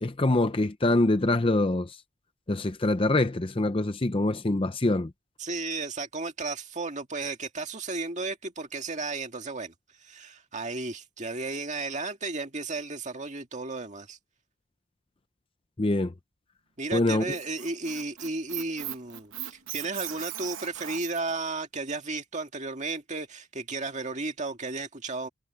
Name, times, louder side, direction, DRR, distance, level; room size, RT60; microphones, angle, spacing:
voice 1, 0.0-2.0 2.5-5.1 15.8-16.1 16.9-17.3, left 2 dB, 25° left, 0.6 m, -24 dB
voice 2, 5.4-9.7 10.0-14.2 16.8-25.3, right 3 dB, 30° right, 1.9 m, -34 dB
Squeak, 17.1-21.3, right 12 dB, 60° right, 1.1 m, -38 dB
head